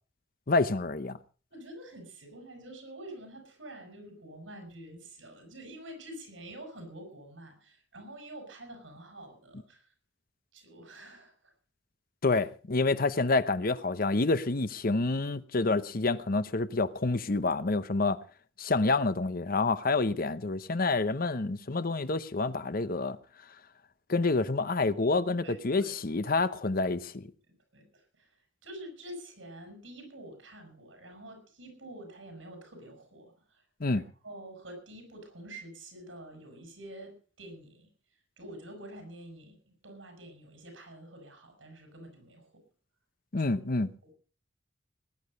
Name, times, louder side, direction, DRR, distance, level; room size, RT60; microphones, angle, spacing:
voice 1, 0.5-1.2 12.2-18.2 18.6-23.2 24.1-27.3 33.8-34.0 43.3-43.9, left 3 dB, 50° left, 0.9 m, -28 dB
voice 2, 1.5-9.9 10.5-11.5 12.3-12.4 25.4-26.4 27.7-33.6 33.9-37.9 38.4-42.6 43.4-44.1, right 1 dB, 85° right, 6.7 m, -48 dB
19.0 x 10.5 x 5.3 m
head